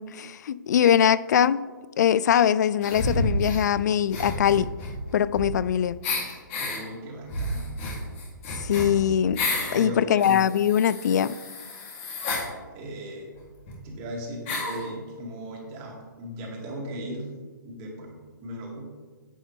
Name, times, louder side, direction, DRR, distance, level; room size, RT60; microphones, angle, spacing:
voice 1, 0.0-1.6 2.0-4.7 5.1-6.0 8.5-9.4 9.7-11.4, left 9 dB, 55° left, 18 dB, 0.4 m, -22 dB
sound 1, 2.8-3.7 4.1-5.7 6.0-6.8 7.3-9.8 10.2-12.5 13.4-13.5 13.7-13.8 14.5-14.8, left 2 dB, 40° left, 3.2 m, -30 dB
voice 2, 6.6-7.9 9.7-10.4 12.7-13.3 13.8-17.3 17.6-18.9, equal, 30° right, -1 dB, 2.6 m, -37 dB
11.0 x 8.6 x 3.5 m, 1.4 s
hypercardioid pair, 135°, 11 cm